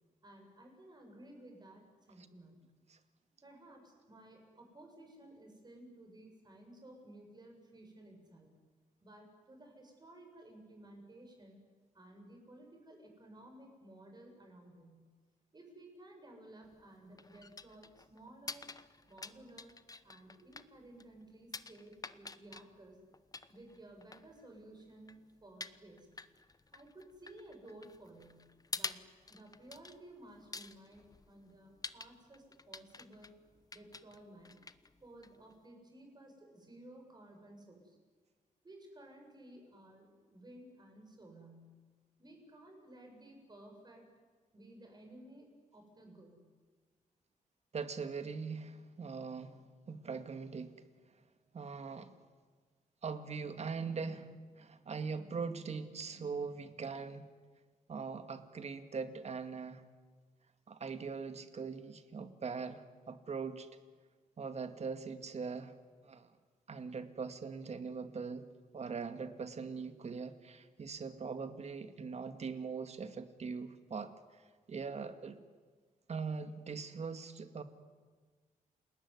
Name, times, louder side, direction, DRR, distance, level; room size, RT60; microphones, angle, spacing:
voice 1, 0.2-2.7 3.4-8.5 9.0-11.6 11.9-15.1 15.5-18.7 19.1-19.8 20.0-23.0 23.5-26.1 26.7-28.5 28.7-29.0 29.3-33.4 33.7-34.5 35.0-38.0 38.6-41.8 42.2-44.1 44.5-46.5, right 1 dB, 30° right, 3 dB, 7.6 m, -56 dB
sound 1, 16.6-35.7, left 3 dB, 25° left, 1.0 m, -49 dB
voice 2, 47.7-50.8 51.5-52.1 53.0-57.3 57.9-59.8 60.7-63.7 64.4-65.7 66.0-66.3 66.7-68.5 68.7-74.1 74.7-75.4 76.1-77.6, right 5 dB, 50° right, 9 dB, 2.1 m, -41 dB
29.5 x 20.5 x 9.7 m, 1.5 s
wide cardioid pair, 115°, 15 cm